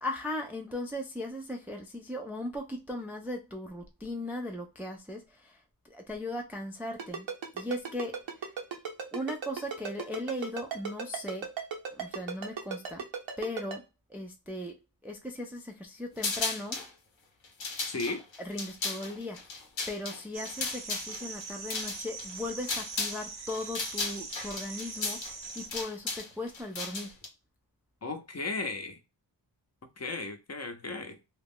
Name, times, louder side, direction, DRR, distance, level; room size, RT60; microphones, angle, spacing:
voice 1, 0.0-7.3 7.5-8.2 9.1-11.5 11.9-13.0 13.4-13.8 14.1-14.8 15.0-16.8 18.4-19.4 19.9-25.2 25.6-27.1, left 1 dB, 5° right, 0.4 m, -38 dB
Ringtone, 7.0-13.8, right 6 dB, 90° right, 0.8 m, -35 dB
sound 1, 16.2-16.9 17.4-23.2 23.5-27.3, left 3 dB, 90° left, 0.9 m, -35 dB
voice 2, 17.9-18.2 28.0-29.0 30.0-31.2, left 3 dB, 35° left, 0.7 m, -35 dB
sound 2, 20.3-25.7, right 4 dB, 60° right, 0.7 m, -42 dB
2.3 x 2.0 x 3.5 m
cardioid pair, 60°, 45 cm